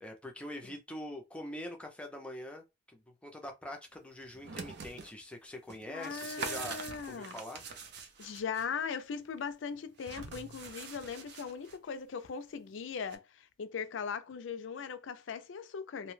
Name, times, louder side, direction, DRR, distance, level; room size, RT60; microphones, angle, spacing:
voice 1, 0.0-6.8 7.1-7.6, left 1 dB, 5° left, 0.5 m, -44 dB
sound 1, 4.2-5.1 5.7-8.7 10.0-11.8 13.1-13.2, right 5 dB, 55° right, 0.5 m, -44 dB
voice 2, 5.9-7.4 8.2-16.1, left 6 dB, 70° left, 0.4 m, -39 dB
2.7 x 2.1 x 3.1 m
head